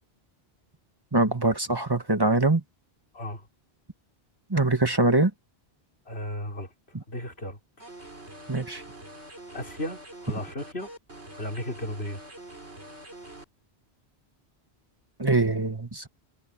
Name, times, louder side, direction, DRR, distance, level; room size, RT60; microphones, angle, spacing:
voice 1, 1.1-2.6 4.5-5.3 6.9-7.0 8.5-8.8 15.2-16.1, right 2 dB, 20° right, 1.6 m, -23 dB
voice 2, 6.1-6.7 7.1-7.6 9.5-10.9 11.3-12.2, left 1 dB, 70° left, 4.3 m, -35 dB
sound 1, 7.8-13.4, right 1 dB, 85° right, 7.3 m, -45 dB
omnidirectional pair, 1.1 m